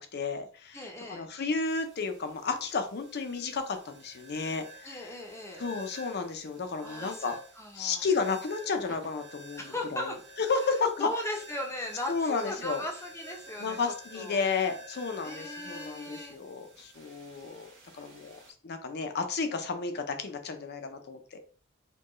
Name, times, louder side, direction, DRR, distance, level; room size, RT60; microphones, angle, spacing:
voice 1, 0.0-5.1 5.6-7.4 7.7-10.1 10.5-11.1 12.1-12.8 13.6-17.7 18.0-21.4, left 4 dB, 50° left, 7 dB, 0.6 m, -32 dB
voice 2, 0.7-1.3 4.8-5.6 6.8-8.0 9.6-10.2 11.0-14.4 15.2-16.4, left 1 dB, 15° left, 1 dB, 0.7 m, -38 dB
sound 1, 1.7-18.5, right 1 dB, 60° right, 1.2 m, -50 dB
4.4 x 2.3 x 3.0 m, 0.41 s
head